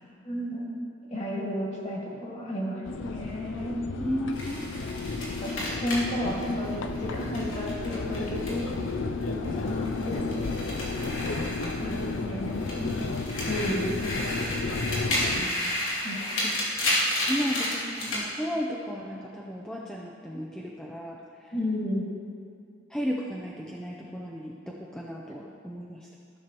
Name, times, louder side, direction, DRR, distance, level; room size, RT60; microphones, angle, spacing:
voice 1, 0.2-0.7 1.1-3.9 5.4-8.7 9.2-10.5 11.8-13.2 13.5-14.5 16.0-16.5 21.5-22.1, equal, 35° left, -4 dB, 1.8 m, -32 dB
sound 1, 2.8-15.5, left 3 dB, 75° left, 0.5 m, -33 dB
voice 2, 4.0-4.6 15.4-15.7 17.3-21.5 22.9-26.1, equal, 5° left, -3 dB, 0.5 m, -34 dB
sound 2, 4.3-8.9 9.2-12.2 12.5-18.2, left 1 dB, 90° left, 2.4 m, -32 dB
15.0 x 6.6 x 3.0 m, 2.4 s
head